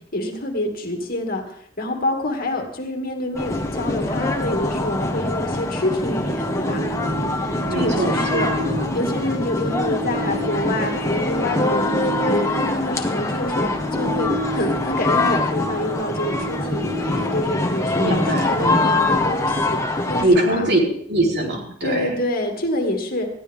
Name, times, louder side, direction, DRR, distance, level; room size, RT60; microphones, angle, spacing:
voice 1, 0.1-6.8 7.7-8.5 8.9-19.8 20.1-20.7 21.8-23.3, left 1 dB, 50° left, 3 dB, 2.6 m, -27 dB
sound 1, 3.3-20.2, left 2 dB, 15° left, 1.6 m, -23 dB
voice 2, 7.7-9.0 18.0-19.0 20.2-20.8 21.1-22.1, right 1 dB, 60° right, -1 dB, 4.1 m, -22 dB
20.5 x 14.5 x 3.7 m, 0.62 s
head